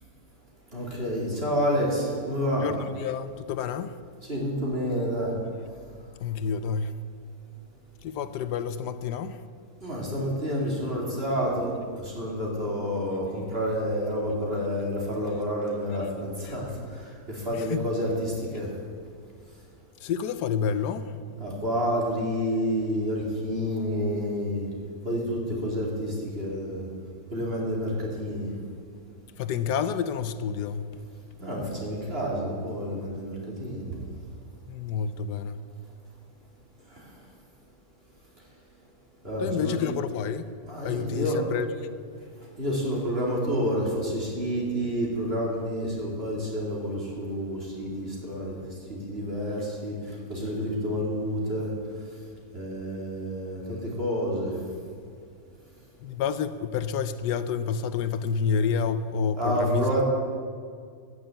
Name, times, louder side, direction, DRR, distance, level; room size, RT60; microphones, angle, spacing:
voice 1, 0.7-2.7 4.2-5.3 9.8-11.7 12.0-18.7 21.4-24.7 25.0-26.9 27.3-28.5 31.4-34.0 39.2-39.8 40.7-41.4 42.6-48.6 49.1-51.7 52.5-54.5 59.4-60.0, equal, 35° right, -3 dB, 3.2 m, -29 dB
voice 2, 2.5-3.9 6.2-6.9 8.0-9.4 16.5-16.6 17.5-17.8 20.0-21.3 29.4-31.0 34.7-35.6 39.4-40.5 40.8-41.7 56.0-59.9, left 6 dB, 80° left, 12 dB, 1.2 m, -29 dB
14.0 x 6.8 x 9.0 m, 2.1 s
omnidirectional pair, 1.8 m